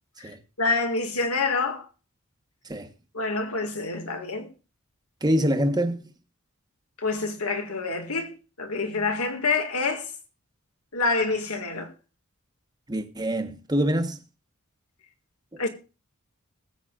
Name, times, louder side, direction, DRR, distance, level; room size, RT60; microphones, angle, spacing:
voice 1, 0.6-1.9 3.1-4.5 7.0-10.1 10.9-11.9 15.6-15.7, left 3 dB, 80° left, 2.1 m, -27 dB
voice 2, 5.2-6.1 12.9-14.2 15.5-15.6, equal, 20° right, 1.2 m, -25 dB
21.0 x 8.2 x 2.5 m
head